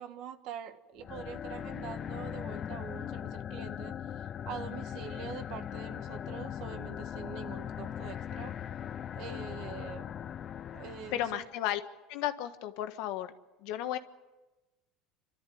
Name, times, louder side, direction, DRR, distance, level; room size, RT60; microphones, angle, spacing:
voice 1, 0.0-8.6 9.1-10.1 10.7-11.5, right 8 dB, 60° right, 1.5 m, -44 dB
sound 1, 1.0-11.5, left 9 dB, 40° left, 0.6 m, -40 dB
voice 2, 11.1-11.8 12.1-13.3 13.6-14.0, left 12 dB, 70° left, 1.5 m, -33 dB
27.0 x 13.0 x 9.4 m
supercardioid pair, 115°, 0 cm